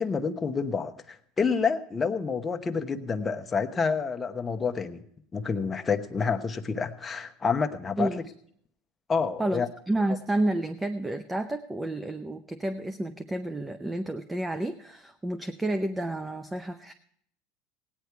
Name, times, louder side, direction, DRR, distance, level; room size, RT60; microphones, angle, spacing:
voice 1, 0.0-5.0 5.3-8.1 9.1-9.7, left 5 dB, 20° left, 6 dB, 1.0 m, -28 dB
voice 2, 9.4-16.9, right 1 dB, 10° right, 10 dB, 0.6 m, -30 dB
17.0 x 9.5 x 4.6 m, 0.67 s
supercardioid pair, 105°, 0 cm